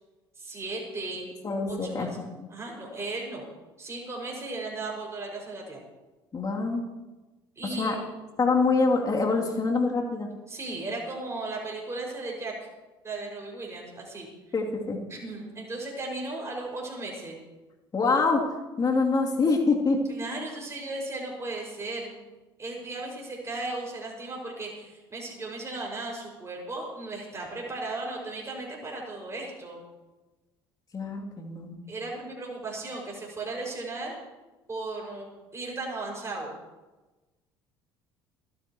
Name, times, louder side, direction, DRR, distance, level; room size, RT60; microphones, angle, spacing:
voice 1, 0.4-1.3 1.7-2.1 2.5-3.5 3.8-5.8 7.6-8.0 10.5-12.5 13.0-14.3 15.1-17.4 20.1-22.1 22.6-29.8 31.9-34.2 34.7-36.5, right 2 dB, 20° right, -2 dB, 6.2 m, -36 dB
voice 2, 1.2-2.5 6.3-6.8 7.8-7.9 8.4-10.3 14.5-15.0 17.9-18.4 18.8-20.0 30.9-31.8, left 4 dB, 30° left, -1 dB, 3.1 m, -25 dB
29.0 x 10.5 x 3.2 m, 1.1 s
figure-of-eight pair, 60°, 13 cm